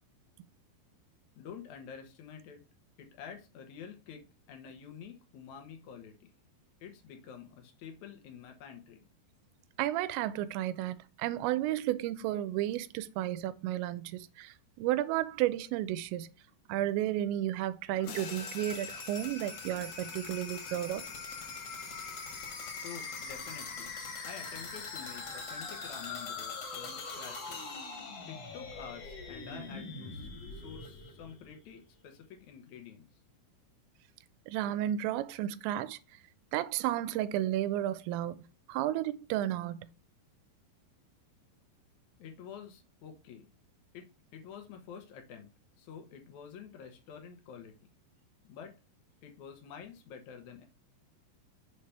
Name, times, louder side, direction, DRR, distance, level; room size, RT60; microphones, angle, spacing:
voice 1, 1.3-2.6 3.0-6.3 6.8-9.1 22.8-23.9 24.2-27.8 28.3-33.2 42.2-43.5 43.9-45.5 45.8-47.7 48.4-48.7 49.2-50.6, left 7 dB, 90° left, 1.6 m, -49 dB
voice 2, 9.8-16.3 16.7-21.1 34.5-36.0 36.5-39.9, right 13 dB, 90° right, 2.9 m, -33 dB
sound 1, 17.9-31.8, left 4 dB, 55° left, 1.7 m, -42 dB
sound 2, 18.0-20.9, left 6 dB, 70° left, 2.9 m, -51 dB
6.7 x 3.3 x 5.7 m
omnidirectional pair, 5.1 m